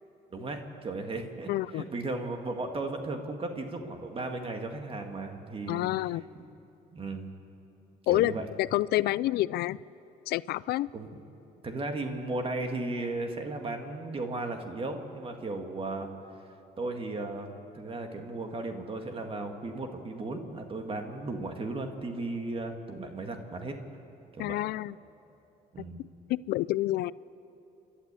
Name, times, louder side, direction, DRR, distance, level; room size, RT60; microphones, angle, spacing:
voice 1, 0.3-5.8 6.9-7.3 8.1-8.5 10.9-11.2 11.6-16.1 16.8-23.7 24.3-24.6 25.7-26.0, right 2 dB, 35° right, 5 dB, 1.9 m, -35 dB
voice 2, 1.5-1.8 5.7-6.2 8.1-9.8 10.3-10.9 24.4-24.9 26.3-27.1, left 16 dB, 70° left, 20 dB, 0.4 m, -28 dB
29.0 x 12.0 x 8.3 m, 2.9 s
cardioid pair, 110°, 17 cm